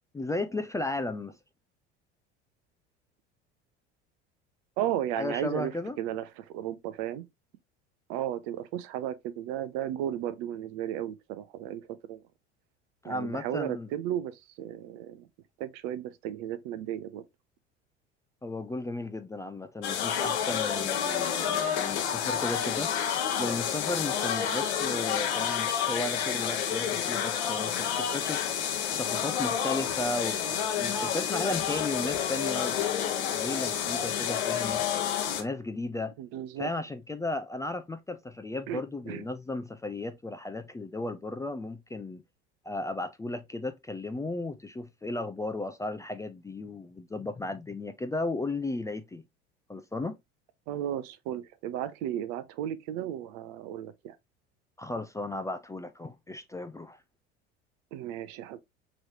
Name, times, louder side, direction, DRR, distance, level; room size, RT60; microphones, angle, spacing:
voice 1, 0.1-1.4 5.2-6.0 13.0-13.9 18.4-22.9 23.4-28.4 29.0-30.4 30.8-34.8 35.4-36.1 36.6-42.2 42.6-49.2 49.7-50.1 54.8-57.0, left 2 dB, 10° left, 0.4 m, -35 dB
voice 2, 4.8-7.2 8.1-12.2 13.1-15.3 15.6-17.2 36.2-36.7 38.7-39.2 50.7-54.2 57.9-58.6, right 11 dB, 60° right, 0.7 m, -34 dB
sound 1, 19.8-35.4, left 8 dB, 70° left, 1.1 m, -29 dB
4.9 x 3.1 x 2.8 m
hypercardioid pair, 70°, 34 cm